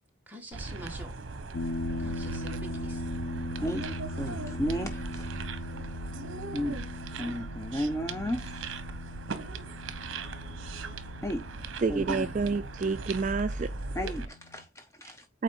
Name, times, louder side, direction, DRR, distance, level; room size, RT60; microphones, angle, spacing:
voice 1, 0.3-1.1 2.0-3.0 4.7-4.9, right 1 dB, 10° right, 1.5 m, -45 dB
sound 1, 0.5-14.3, right 3 dB, 70° right, 0.9 m, -38 dB
sound 2, 1.5-14.6, left 3 dB, 80° left, 1.0 m, -40 dB
voice 2, 3.6-5.2 6.5-6.8 7.2-8.8 11.2-11.5 11.9-12.3 14.0-15.3, equal, 15° left, 0.5 m, -34 dB
voice 3, 11.8-13.7 15.3-15.4, right 4 dB, 35° right, 0.3 m, -29 dB
8.3 x 4.3 x 3.7 m
head